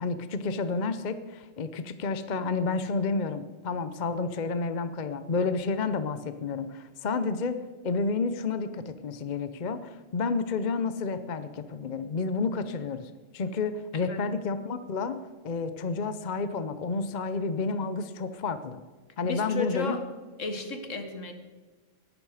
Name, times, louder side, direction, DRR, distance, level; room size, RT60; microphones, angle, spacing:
voice 1, 0.0-7.6 7.8-15.2 15.4-18.8 19.2-20.0, left 4 dB, 40° left, 11 dB, 0.7 m, -30 dB
voice 2, 19.2-20.0 20.4-21.3, left 3 dB, 70° left, 7 dB, 1.9 m, -33 dB
19.0 x 11.5 x 4.9 m, 1.3 s
omnidirectional pair, 1.4 m